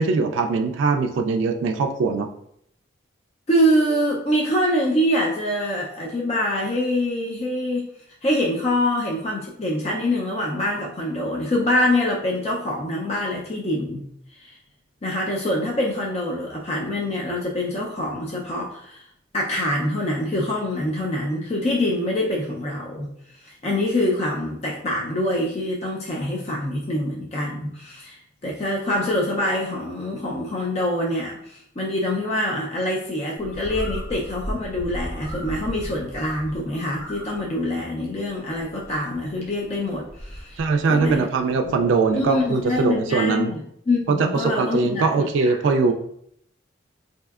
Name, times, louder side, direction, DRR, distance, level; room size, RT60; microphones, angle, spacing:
voice 1, 0.0-2.3 40.6-43.5 44.1-45.9, right 4 dB, 80° right, 5 dB, 0.3 m, -21 dB
voice 2, 3.5-7.9 8.2-14.0 14.4-14.6 15.0-19.1 19.3-23.1 23.4-41.2 41.6-41.7 42.1-45.5, left 1 dB, 35° left, -3 dB, 0.4 m, -25 dB
Bird, 33.4-42.9, equal, 85° left, 0.9 m, -38 dB
4.2 x 2.7 x 2.3 m, 0.71 s
head